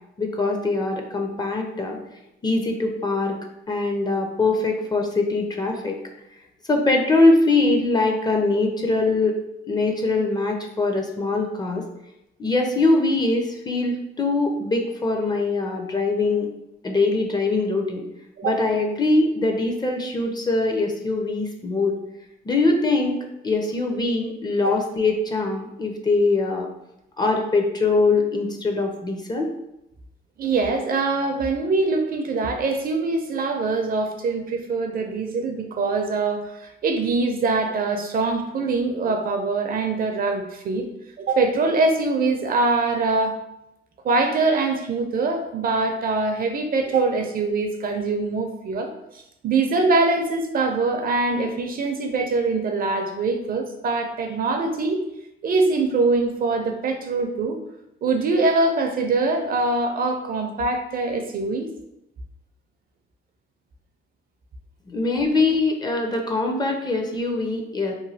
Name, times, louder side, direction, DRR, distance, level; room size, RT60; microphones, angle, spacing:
voice 1, 0.2-2.0 2.4-3.4 3.7-6.0 6.7-9.4 9.7-11.8 12.4-16.5 16.8-18.0 18.4-22.0 22.5-23.2 23.4-26.7 27.2-29.5 64.9-67.9, left 3 dB, 20° left, 2 dB, 0.4 m, -22 dB
voice 2, 30.4-40.9 41.2-43.4 44.0-48.9 49.4-55.0 55.4-57.6 58.0-61.7, right 3 dB, 45° right, 4 dB, 0.4 m, -23 dB
3.0 x 2.2 x 2.7 m, 0.87 s
cardioid pair, 90°, 20 cm